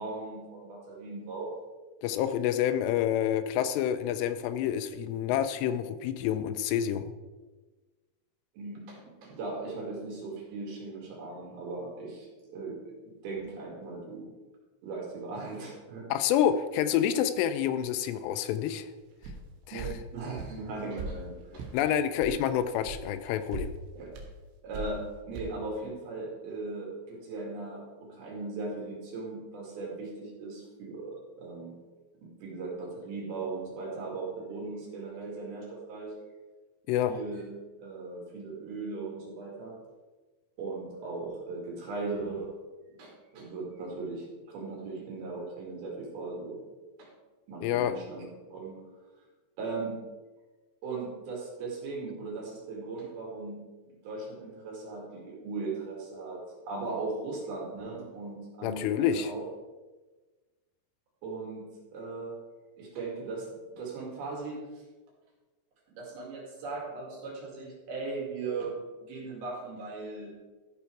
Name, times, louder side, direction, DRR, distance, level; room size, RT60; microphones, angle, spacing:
voice 1, 0.0-1.5 8.6-14.3 14.8-16.1 19.7-21.8 24.0-24.1 24.6-31.8 32.2-36.1 37.1-37.5 37.8-39.7 40.6-42.6 42.9-46.6 47.0-47.1 47.5-48.7 49.6-49.9 50.8-59.5 61.2-62.3 62.8-64.6 65.9-68.7 69.1-70.4, right 3 dB, 65° right, -3 dB, 4.1 m, -38 dB
voice 2, 2.0-7.1 16.1-18.9 19.7-19.9 21.7-23.7 36.9-37.2 47.6-48.0 58.6-59.3, left 10 dB, 85° left, 10 dB, 2.6 m, -28 dB
sound 1, 19.2-19.4 19.8-19.9 20.4-20.6 21.0-21.1 21.6-21.8 22.2-22.4 22.8-23.0 23.3-23.7 24.1-24.3 24.7-25.0 25.3-25.4, right 4 dB, 90° right, 3.6 m, -38 dB
14.0 x 5.7 x 4.7 m, 1.3 s
omnidirectional pair, 5.0 m